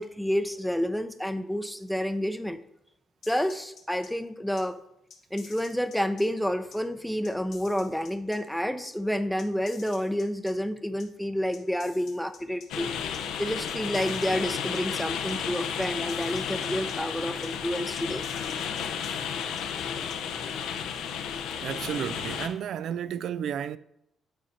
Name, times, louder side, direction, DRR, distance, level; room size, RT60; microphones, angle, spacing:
voice 1, 0.0-2.6 3.3-4.8 5.3-12.9 13.4-18.3, equal, ahead, 0.5 m, -29 dB
sound 1, 3.2-4.1 4.6-4.7 5.1-6.2 6.7-6.8 7.2-8.4 8.9-9.0 9.4-10.5 11.0-11.1 11.5-12.7 13.1-13.2 13.7-14.8 15.3-15.4 15.8-16.9 17.4-17.5 18.0-19.6 20.1-20.2, left 6 dB, 70° left, 1.2 m, -50 dB
sound 2, 12.7-22.5, left 7 dB, 85° left, 0.6 m, -33 dB
voice 2, 21.6-23.8, right 9 dB, 70° right, 0.3 m, -32 dB
7.5 x 4.4 x 4.2 m
cardioid pair, 90°, 0 cm